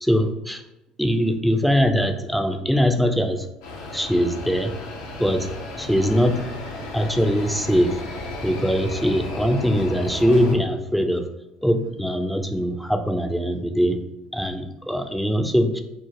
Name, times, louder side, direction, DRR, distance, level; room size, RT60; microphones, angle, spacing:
voice 1, 0.0-0.6 1.0-3.5 3.9-4.7 5.2-6.5 6.9-8.0 8.4-11.2 11.6-14.0 14.3-15.8, equal, ahead, 6 dB, 0.3 m, -22 dB
sound 1, 3.6-10.6, left 2 dB, 70° left, 0.4 m, -34 dB
2.4 x 2.0 x 3.2 m, 0.93 s
hypercardioid pair, 65°, 3 cm